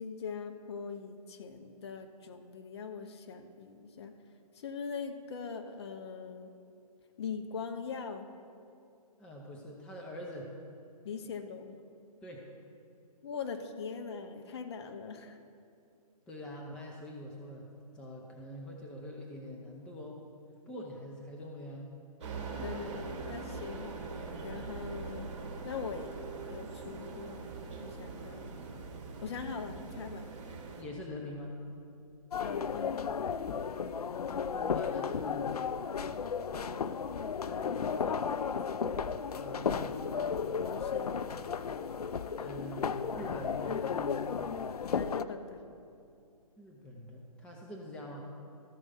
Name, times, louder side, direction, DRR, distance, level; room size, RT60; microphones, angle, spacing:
voice 1, 0.0-4.1 4.5-6.5 7.2-8.3 11.0-11.8 13.2-15.4 22.6-24.0 24.4-25.3 25.6-26.1 26.5-28.5 29.2-30.3 32.4-32.9 37.4-38.5 40.7-41.2 44.9-45.7, left 5 dB, 45° left, 7 dB, 0.8 m, -41 dB
voice 2, 9.2-10.5 12.2-12.4 16.3-17.7 17.9-20.2 20.7-21.9 22.5-22.7 30.8-31.6 34.5-35.5 39.4-40.1 42.3-44.3 46.6-48.2, left 1 dB, 5° left, -1 dB, 0.5 m, -44 dB
sound 1, 22.2-30.8, right 4 dB, 50° right, 1.5 m, -42 dB
sound 2, 32.3-45.2, left 6 dB, 75° left, 0.4 m, -34 dB
13.0 x 4.7 x 5.5 m, 2.5 s
figure-of-eight pair, 135°, 20 cm